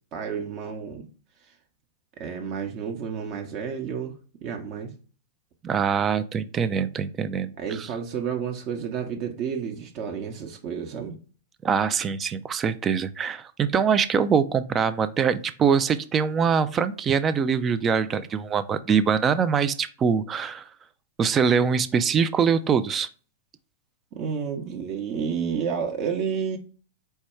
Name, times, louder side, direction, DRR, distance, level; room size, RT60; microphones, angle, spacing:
voice 1, 0.1-1.1 2.2-4.1 4.4-4.9 7.6-11.2 24.1-26.6, right 7 dB, 45° right, 3 dB, 0.8 m, -30 dB
voice 2, 5.6-7.9 11.6-20.7 21.2-23.1, right 6 dB, 25° right, 13 dB, 0.3 m, -23 dB
4.5 x 2.2 x 4.4 m, 0.38 s
hypercardioid pair, 110°, 0 cm